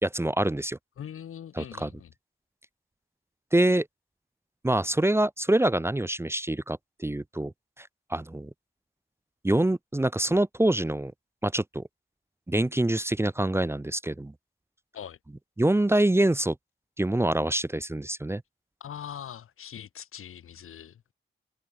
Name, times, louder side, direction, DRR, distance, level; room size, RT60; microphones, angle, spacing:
voice 1, 0.0-0.8 1.6-1.9 3.5-3.9 4.6-7.5 7.8-8.5 9.4-11.1 11.4-11.8 12.5-14.3 15.6-16.6 17.0-18.4, right 1 dB, 10° right, 0.5 m, -25 dB
voice 2, 1.0-2.1 14.9-15.2 18.8-21.1, left 9 dB, 90° left, 1.0 m, -42 dB
cardioid pair, 50°, 21 cm